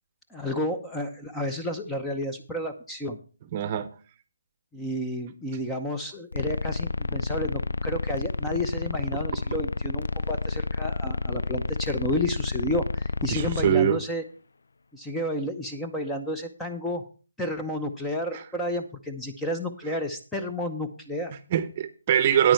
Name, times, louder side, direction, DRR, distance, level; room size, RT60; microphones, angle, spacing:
voice 1, 0.3-3.2 4.7-14.2 14.9-17.0 17.4-21.3, left 1 dB, 5° left, 4 dB, 0.8 m, -31 dB
voice 2, 3.5-3.9 13.3-14.0 18.3-18.4 21.5-22.5, right 9 dB, 30° right, 13 dB, 0.9 m, -23 dB
sound 1, 6.3-13.7, left 3 dB, 70° left, 0.4 m, -30 dB
9.6 x 8.7 x 4.7 m, 0.37 s
figure-of-eight pair, 155°, 0 cm